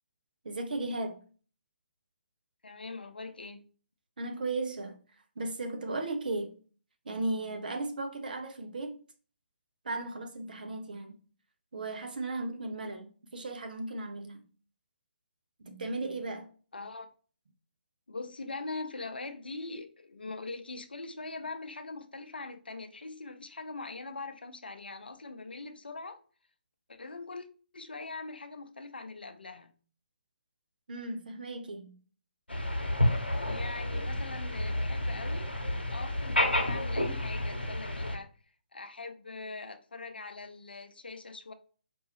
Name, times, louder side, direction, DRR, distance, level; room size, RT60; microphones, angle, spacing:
voice 1, 0.4-1.2 4.2-5.0 5.4-6.5 7.0-9.0 9.8-11.2 11.7-14.4 15.6-16.5 30.9-31.9, right 2 dB, 55° right, 0.8 m, -36 dB
voice 2, 2.6-3.7 16.7-17.1 18.1-26.2 26.9-27.5 27.7-29.7 33.4-35.5 35.9-38.3 38.7-41.5, left 3 dB, 70° left, 0.6 m, -42 dB
sound 1, 32.5-38.2, left 1 dB, 90° left, 0.9 m, -30 dB
4.7 x 2.6 x 3.0 m
figure-of-eight pair, 140°, 6 cm